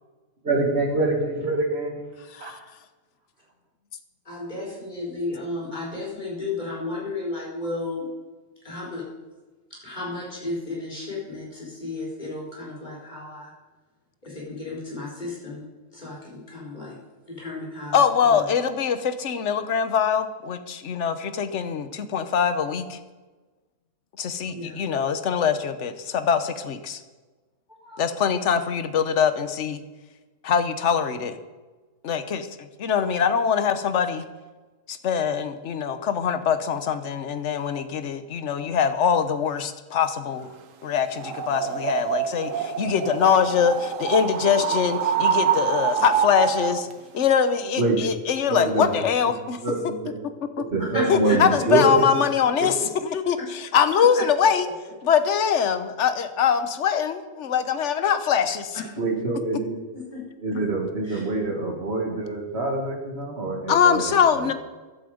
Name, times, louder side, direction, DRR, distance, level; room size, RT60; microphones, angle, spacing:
voice 1, 0.4-1.9 2.4-2.5 47.8-48.2 48.5-48.9 49.6-50.2 50.6-52.1 52.6-52.7 59.0-59.7 60.4-64.5, right 2 dB, 50° right, 0 dB, 2.5 m, -25 dB
voice 2, 4.2-8.1 8.6-9.0 9.7-13.5 14.2-15.6 15.9-17.0 17.3-18.0 18.3-18.4 24.5-24.8 27.8-28.1 50.8-51.4 52.8-52.9 53.4-53.5 54.1-54.2 58.7-58.8 59.9-60.2 60.5-60.6 61.0-61.2, left 3 dB, 35° left, -4 dB, 4.7 m, -33 dB
voice 3, 17.9-23.0 24.2-27.0 28.0-29.8 30.4-31.4 32.0-34.2 34.9-40.5 40.8-46.9 47.1-49.6 51.1-54.7 55.0-58.7 63.7-64.5, left 7 dB, 65° left, 10 dB, 1.2 m, -23 dB
sound 1, 41.1-46.9, right 8 dB, 70° right, 1.3 m, -26 dB
15.0 x 11.5 x 5.1 m, 1.2 s
omnidirectional pair, 1.4 m